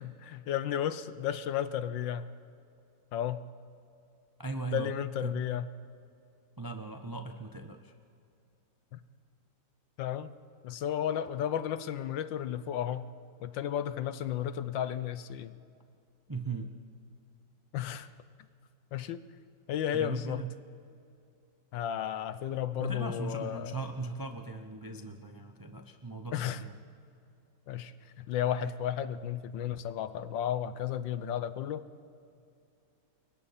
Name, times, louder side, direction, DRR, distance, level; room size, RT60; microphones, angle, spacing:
voice 1, 0.0-2.3 3.1-3.4 4.7-5.7 8.9-9.0 10.0-10.4 10.6-13.1 13.4-15.6 17.7-18.1 18.9-19.2 19.7-20.4 21.7-23.8 26.3-26.6 27.7-31.9, left 10 dB, 70° left, 13 dB, 1.4 m, -33 dB
voice 2, 4.4-4.9 5.2-5.4 6.6-7.9 16.3-16.7 19.9-20.5 22.8-26.7, right 3 dB, 25° right, 6 dB, 0.4 m, -38 dB
29.0 x 23.0 x 4.3 m, 2.5 s
omnidirectional pair, 2.2 m